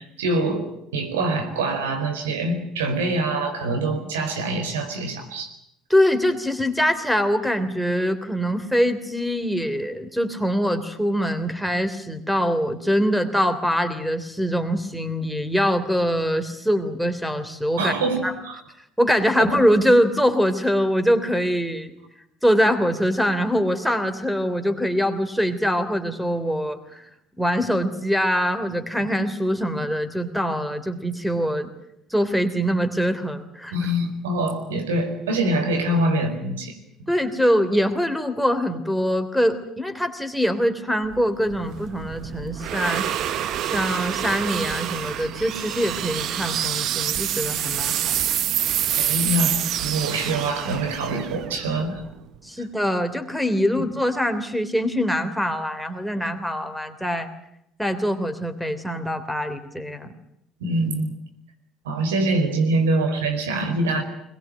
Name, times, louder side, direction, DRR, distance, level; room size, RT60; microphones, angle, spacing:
voice 1, 0.0-5.5 17.8-18.6 19.4-19.6 33.7-36.7 49.0-52.0 53.8-53.9 60.6-61.1 61.8-64.0, right 2 dB, 85° right, 4 dB, 4.6 m, -24 dB
voice 2, 5.9-17.9 18.2-18.3 19.0-21.9 22.4-27.0 27.4-31.7 32.1-33.7 37.1-48.3 52.4-57.3 57.8-60.1, equal, ahead, 11 dB, 3.2 m, -23 dB
sound 1, 41.1-52.3, right 11 dB, 60° right, 1.1 m, -27 dB
22.0 x 20.5 x 8.9 m, 0.79 s
hypercardioid pair, 65°, 0 cm